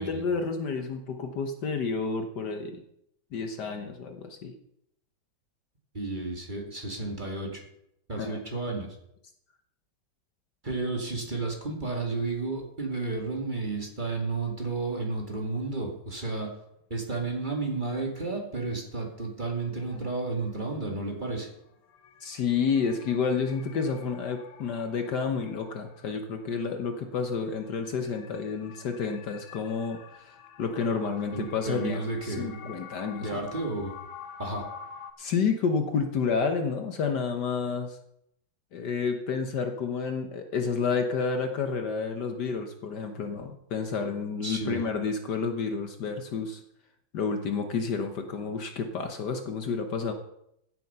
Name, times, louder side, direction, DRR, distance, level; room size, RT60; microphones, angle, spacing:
voice 1, 0.0-2.8 3.3-4.5 8.2-8.4 22.2-30.0 30.3-33.4 35.2-38.0 38.7-46.6 47.1-50.1, left 5 dB, 60° left, 6 dB, 1.5 m, -30 dB
voice 2, 5.9-7.7 8.1-9.0 10.6-16.5 16.9-21.5 31.3-32.8 33.2-34.0 34.4-34.7 44.4-44.8, right 3 dB, 25° right, 1 dB, 2.2 m, -32 dB
sound 1, 16.1-16.2 19.3-19.4 19.8-35.1, left 7 dB, 75° left, 1.8 m, -48 dB
15.5 x 7.6 x 5.6 m, 0.78 s
omnidirectional pair, 2.2 m